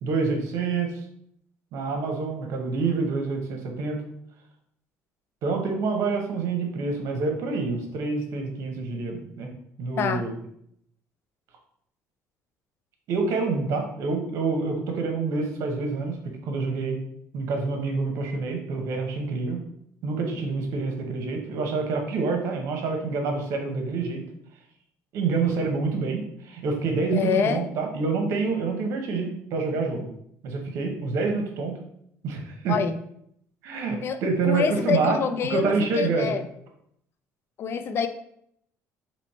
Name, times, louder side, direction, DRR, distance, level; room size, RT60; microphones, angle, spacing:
voice 1, 0.0-0.9 1.7-4.0 5.4-9.5 9.8-10.4 13.1-16.2 16.4-17.0 17.3-19.6 20.0-24.2 25.1-30.1 30.4-31.8 32.2-32.8 33.6-35.2 35.5-36.3, right 4 dB, 70° right, 3 dB, 0.9 m, -27 dB
voice 2, 27.1-27.7 32.7-32.9 34.0-34.2 34.4-36.4 37.6-38.1, left 7 dB, 50° left, 9 dB, 0.4 m, -26 dB
3.1 x 3.0 x 4.2 m, 0.70 s
cardioid pair, 110°, 5 cm